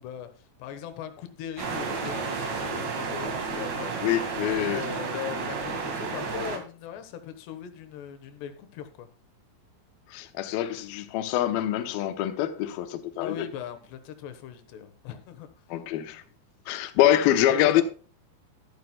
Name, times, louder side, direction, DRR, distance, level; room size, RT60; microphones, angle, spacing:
voice 1, 0.0-4.0 4.7-9.1 13.2-15.6 17.5-17.8, left 9 dB, 70° left, 3.1 m, -39 dB
sound 1, 1.6-6.6, right 4 dB, 50° right, 2.5 m, -32 dB
voice 2, 4.0-4.9 10.1-13.5 15.7-16.2 16.7-17.8, left 12 dB, 90° left, 2.1 m, -25 dB
13.5 x 11.5 x 2.3 m
omnidirectional pair, 5.6 m